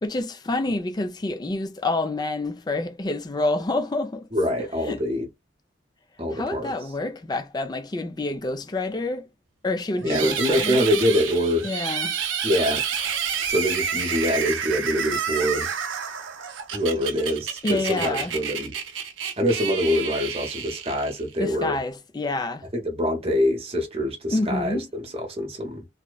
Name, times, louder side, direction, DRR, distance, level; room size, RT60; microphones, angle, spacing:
voice 1, 0.0-4.3 4.8-5.0 6.3-9.2 9.6-10.9 11.6-12.2 17.6-18.4 21.4-22.7 24.3-24.9, left 2 dB, 20° left, 0.3 m, -28 dB
voice 2, 4.3-5.3 6.2-6.7 10.0-11.7 12.4-12.8 13.4-15.7 16.7-18.7 19.4-21.8 22.7-25.9, equal, 30° right, 0.8 m, -25 dB
sound 1, 10.1-21.4, right 7 dB, 90° right, 0.6 m, -29 dB
2.7 x 2.1 x 2.2 m
head